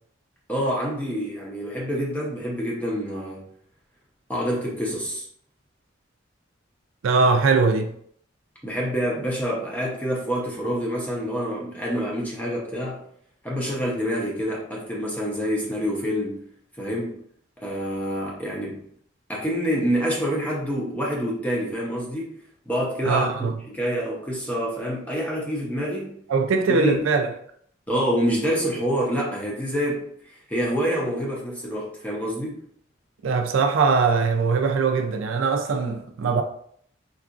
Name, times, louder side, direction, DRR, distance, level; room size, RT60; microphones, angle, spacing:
voice 1, 0.5-3.5 4.3-5.2 8.6-13.0 13.4-16.4 16.8-17.2 17.6-18.8 19.3-22.4 22.7-23.3 23.7-26.2 26.7-27.0 27.9-32.6, equal, 10° left, 0.7 m, -27 dB
voice 2, 7.0-7.9 23.0-23.5 26.3-27.3 33.2-36.4, right 4 dB, 80° right, 0.4 m, -21 dB
3.9 x 2.4 x 2.4 m
head